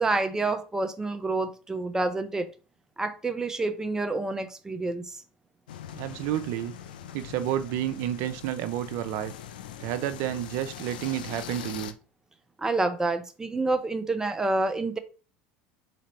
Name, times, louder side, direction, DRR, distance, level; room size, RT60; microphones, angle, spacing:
voice 1, 0.0-2.5 3.0-5.2 12.6-15.0, right 2 dB, 10° right, 0.7 m, -28 dB
sound 1, 5.7-11.9, left 9 dB, 85° left, 0.5 m, -42 dB
voice 2, 5.9-6.7 7.1-9.3 9.8-11.9, right 12 dB, 65° right, 0.5 m, -30 dB
4.1 x 4.0 x 3.1 m
hypercardioid pair, 90°, 5 cm